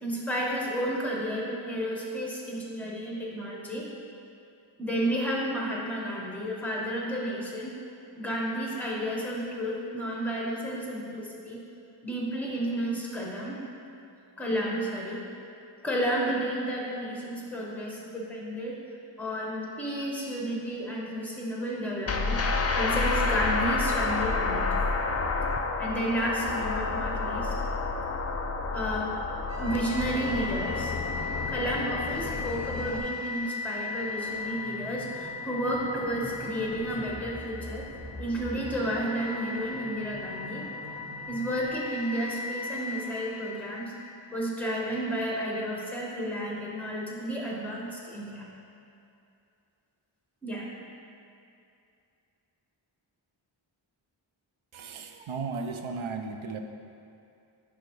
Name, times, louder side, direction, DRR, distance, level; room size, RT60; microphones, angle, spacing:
voice 1, 0.0-3.9 4.8-7.7 8.2-11.6 12.0-13.6 14.4-15.2 15.8-18.8 19.2-24.8 25.8-27.5 28.7-29.1 29.6-30.9 31.5-37.9 38.2-40.6 41.3-43.9 44.3-48.5 50.4-50.7, equal, 5° left, -4 dB, 1.2 m, -32 dB
sound 1, 22.1-33.0, left 3 dB, 35° left, 0.4 m, -29 dB
sound 2, 29.5-44.6, left 3 dB, 35° right, 1.3 m, -37 dB
voice 2, 54.7-56.6, right 4 dB, 85° right, 5 dB, 0.6 m, -35 dB
10.5 x 3.5 x 3.2 m, 2.6 s
wide cardioid pair, 55°, 47 cm